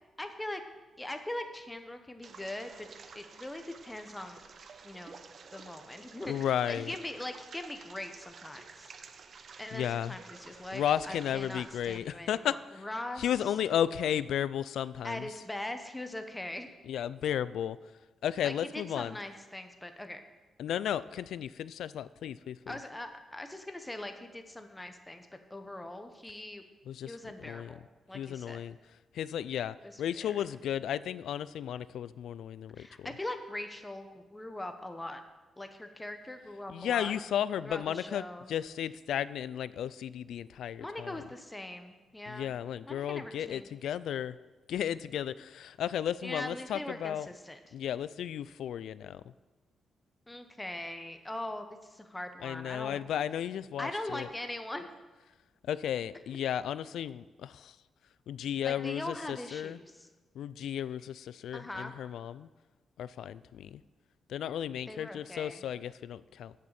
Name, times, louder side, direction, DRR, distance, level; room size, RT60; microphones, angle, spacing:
voice 1, 0.2-0.6 1.0-2.9 3.1-4.4 4.8-5.2 5.5-6.3 6.7-8.9 9.6-13.2 15.0-16.7 18.4-20.2 22.7-26.6 27.0-28.6 29.8-30.4 32.8-35.2 35.6-37.2 37.6-38.5 40.8-42.5 42.9-43.7 46.2-47.7 50.3-53.0 53.8-54.9 58.6-60.1 61.5-61.9 64.9-65.6, left 1 dB, 10° left, 7 dB, 0.8 m, -41 dB
sound 1, 2.2-12.0, right 5 dB, 45° right, 0.7 m, -52 dB
voice 2, 6.3-7.0 9.7-10.2 10.7-12.8 13.2-15.3 16.8-17.8 18.2-19.2 20.6-22.8 26.9-27.2 27.4-27.7 28.1-28.8 29.1-33.1 36.7-41.2 42.3-44.4 44.7-47.3 47.7-49.2 52.4-54.3 55.7-57.8 58.3-59.8 60.3-62.5 63.0-63.8 64.3-66.5, left 10 dB, 85° left, 17 dB, 0.3 m, -34 dB
7.5 x 7.0 x 8.1 m, 1.2 s
wide cardioid pair, 145°, 0 cm